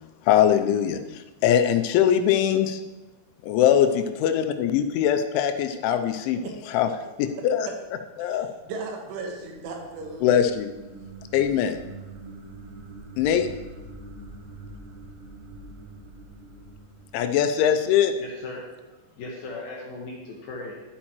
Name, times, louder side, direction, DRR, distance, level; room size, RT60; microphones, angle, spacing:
voice 1, 0.3-2.8 3.4-6.9 7.2-7.7 8.2-8.5 10.2-10.7 11.3-11.8 13.2-13.5 17.1-18.1, left 9 dB, 90° left, 8 dB, 3.1 m, -22 dB
voice 2, 6.4-6.8 8.2-10.3, right 3 dB, 90° right, 1 dB, 3.8 m, -37 dB
sound 1, 8.8-17.9, right 2 dB, 65° right, 2.0 m, -44 dB
voice 3, 18.1-20.8, left 2 dB, 75° left, -2 dB, 2.2 m, -38 dB
11.5 x 8.7 x 3.0 m, 1.1 s
omnidirectional pair, 5.3 m